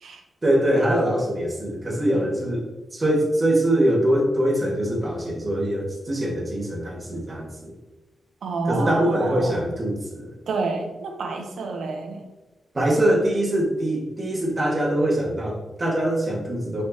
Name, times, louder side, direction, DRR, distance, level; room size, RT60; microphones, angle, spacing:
voice 1, 0.4-2.6 2.9-7.7 8.7-10.3 12.7-16.8, right 1 dB, 30° right, -3 dB, 1.9 m, -23 dB
voice 2, 8.4-9.6 10.5-12.2, right 4 dB, 80° right, 4 dB, 1.0 m, -29 dB
6.3 x 5.4 x 2.9 m, 1.2 s
wide cardioid pair, 110°, 0 cm